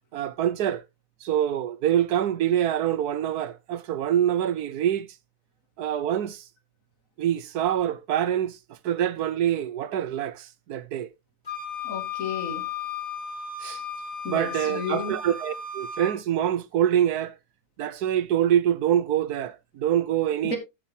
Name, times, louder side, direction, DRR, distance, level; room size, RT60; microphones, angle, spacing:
voice 1, 0.1-0.8 1.2-5.1 5.8-6.4 7.2-8.6 8.8-11.1 13.6-13.8 14.3-17.4 17.8-20.6, right 10 dB, 80° right, 1.3 m, -25 dB
Wind instrument woodwind instrument, 11.5-16.2, left 6 dB, 25° left, 2.7 m, -35 dB
voice 2, 11.8-12.6 14.2-15.2 20.4-20.6, left 4 dB, 60° left, 2.8 m, -32 dB
12.5 x 7.4 x 2.8 m
omnidirectional pair, 1.6 m